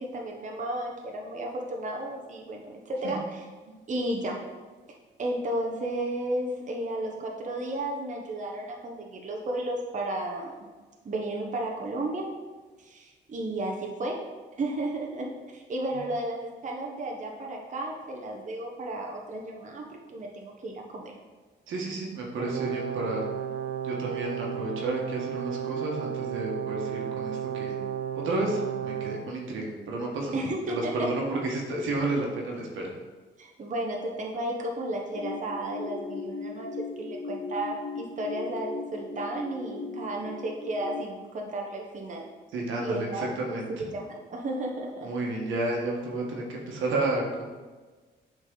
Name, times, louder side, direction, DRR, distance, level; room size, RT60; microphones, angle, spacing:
voice 1, 0.0-3.4 3.9-4.4 5.2-10.5 11.0-12.3 12.8-14.3 14.6-21.1 30.3-31.1 33.4-42.3 42.8-43.3 43.8-45.1, right 1 dB, 40° right, 0 dB, 1.0 m, -33 dB
voice 2, 21.7-23.2 23.8-27.8 28.1-32.9 42.5-43.7 45.0-47.4, right 2 dB, 80° right, -1 dB, 1.5 m, -31 dB
Brass instrument, 22.4-29.3, right 10 dB, 55° right, 0.7 m, -33 dB
sound 1, 35.1-41.0, left 4 dB, 45° left, 0.5 m, -37 dB
8.0 x 4.1 x 3.9 m, 1.3 s
cardioid pair, 90°, 20 cm